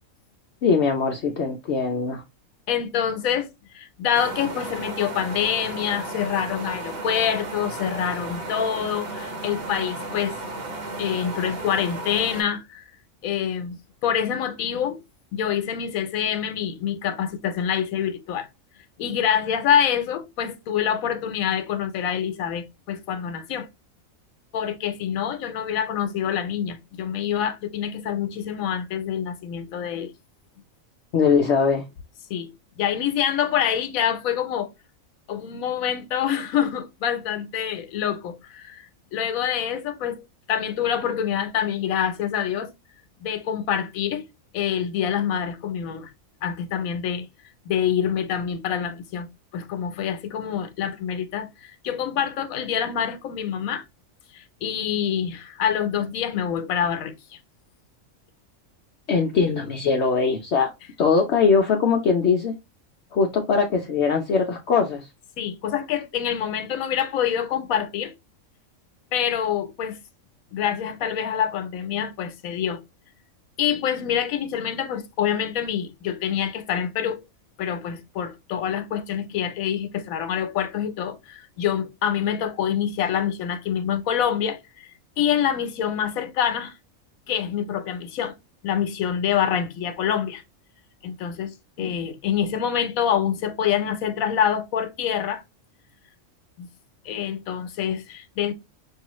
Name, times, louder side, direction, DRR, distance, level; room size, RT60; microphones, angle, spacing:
voice 1, 0.6-2.2 31.1-31.8 59.1-60.7 61.0-62.5 63.1-65.1 91.8-91.9, left 5 dB, 60° left, 0.8 m, -21 dB
voice 2, 2.7-3.5 3.7-10.4 11.0-12.8 13.2-13.8 14.0-15.0 15.3-18.5 19.0-23.7 24.5-30.1 32.3-34.7 35.3-42.7 43.2-44.2 44.5-46.1 46.4-47.3 47.7-49.3 49.5-53.8 54.3-57.4 65.4-68.1 69.1-70.0 70.5-72.8 73.6-77.2 77.6-84.9 85.2-86.7 87.3-88.3 88.6-90.4 91.0-95.4 96.6-96.7 97.0-98.5, left 9 dB, 85° left, 1.1 m, -26 dB
sound 1, 4.2-12.4, right 2 dB, 50° right, 1.0 m, -34 dB
5.3 x 2.4 x 3.0 m
omnidirectional pair, 1.4 m